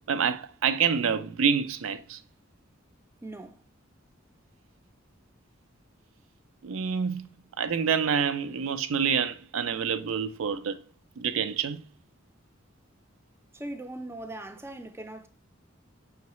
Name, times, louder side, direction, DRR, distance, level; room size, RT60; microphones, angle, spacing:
voice 1, 0.1-2.2 6.6-7.3 7.6-10.8 11.2-11.8, right 6 dB, 75° right, 0.4 m, -27 dB
voice 2, 3.2-3.6 13.5-15.3, right 1 dB, 15° right, 0.4 m, -40 dB
5.7 x 3.1 x 3.0 m
head